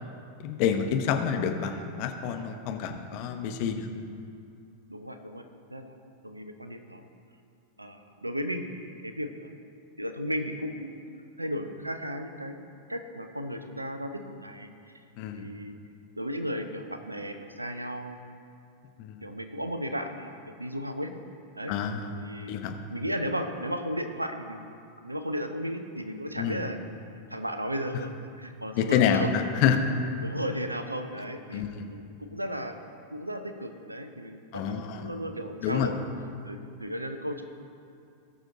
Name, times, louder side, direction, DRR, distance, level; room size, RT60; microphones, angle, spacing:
voice 1, 0.4-3.9 15.2-15.5 19.0-19.2 21.7-22.1 22.5-22.7 26.4-26.6 28.8-29.9 31.5-31.9 34.5-35.1 35.6-35.9, left 7 dB, 45° left, 5 dB, 1.0 m, -27 dB
voice 2, 4.9-6.0 6.2-7.0 7.8-9.5 10.0-10.9 11.4-14.7 15.3-15.8 16.2-18.2 19.2-21.1 21.5-21.7 22.2-22.5 22.9-24.7 25.0-26.8 27.3-29.4 30.2-31.6 31.9-32.8 33.1-36.0 36.5-37.4, equal, 85° right, 7 dB, 0.8 m, -35 dB
19.0 x 6.4 x 3.7 m, 2.5 s
figure-of-eight pair, 90°, 0 cm